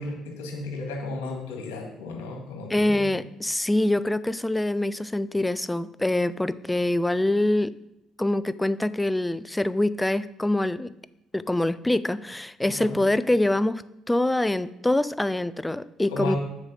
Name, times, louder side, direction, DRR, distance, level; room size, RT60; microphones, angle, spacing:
voice 1, 0.0-3.1 12.6-13.0 16.1-16.4, left 2 dB, 90° left, 1 dB, 1.9 m, -34 dB
voice 2, 2.7-7.7 8.2-10.9 11.3-16.4, left 1 dB, 10° left, 16 dB, 0.4 m, -25 dB
7.3 x 4.8 x 6.7 m, 0.89 s
hypercardioid pair, 60°, 0 cm